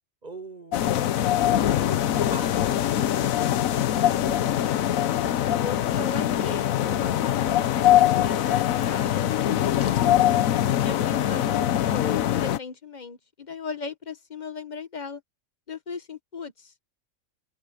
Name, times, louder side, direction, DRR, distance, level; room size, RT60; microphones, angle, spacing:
voice 1, 0.2-3.1 11.3-11.7, right 3 dB, 35° right, 5.4 m, -44 dB
sound 1, 0.7-12.6, left 11 dB, 85° left, 1.2 m, -23 dB
voice 2, 3.7-5.0 5.2-7.8 8.2-10.2 10.8-15.2 15.7-16.7, left 5 dB, 35° left, 1.2 m, -37 dB
omnidirectional pair, 1.4 m